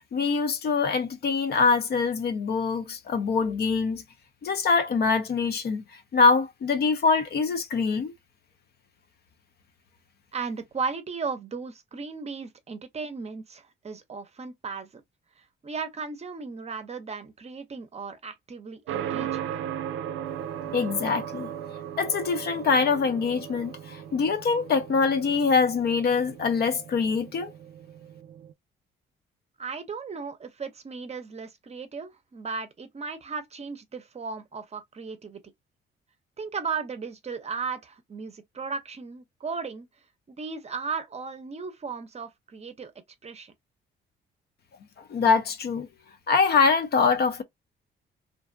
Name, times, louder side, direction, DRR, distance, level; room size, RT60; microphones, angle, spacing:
voice 1, 0.1-4.0 4.4-5.8 6.1-8.1 20.7-21.5 22.0-27.5 45.1-45.9 46.3-47.4, left 5 dB, 55° left, 0.6 m, -24 dB
voice 2, 10.3-14.9 15.4-19.5 29.6-35.4 36.4-39.9 40.3-42.9 43.2-43.5, right 5 dB, 35° right, 0.6 m, -36 dB
sound 1, 18.9-28.5, right 10 dB, 90° right, 0.4 m, -37 dB
2.5 x 2.2 x 2.5 m
cardioid pair, 90°, 20 cm